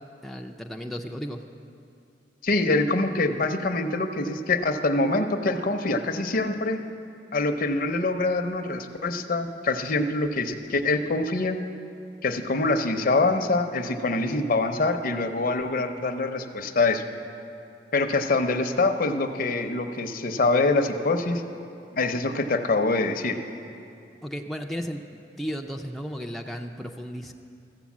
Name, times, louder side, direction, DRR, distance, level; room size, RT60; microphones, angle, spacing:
voice 1, 0.2-1.4 24.2-27.3, equal, ahead, 2 dB, 0.4 m, -34 dB
voice 2, 2.4-6.8 7.3-11.6 12.2-17.0 17.9-21.4 21.9-23.4, left 3 dB, 55° left, 7 dB, 0.7 m, -25 dB
14.0 x 7.8 x 7.2 m, 2.6 s
head